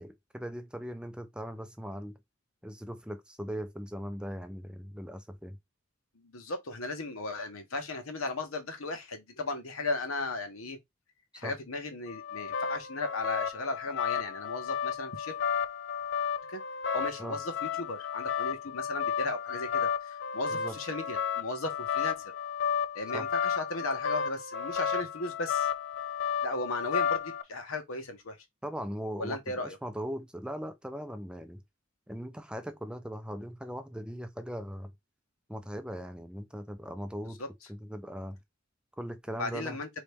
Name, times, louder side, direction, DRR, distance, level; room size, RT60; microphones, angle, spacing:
voice 1, 0.0-2.2 2.6-5.6 11.4-11.5 17.2-17.4 20.5-20.8 23.1-23.3 28.6-31.6 32.1-34.9 35.5-37.4 37.7-38.4 39.0-39.8, equal, 5° right, 0.5 m, -39 dB
voice 2, 6.1-10.8 11.3-15.4 16.5-16.6 16.9-22.1 22.9-25.7 26.4-28.4 29.2-29.8 37.4-37.5 39.4-39.9, left 2 dB, 90° left, 1.2 m, -36 dB
sound 1, 12.1-27.4, left 7 dB, 60° left, 0.5 m, -32 dB
4.1 x 3.2 x 3.4 m
head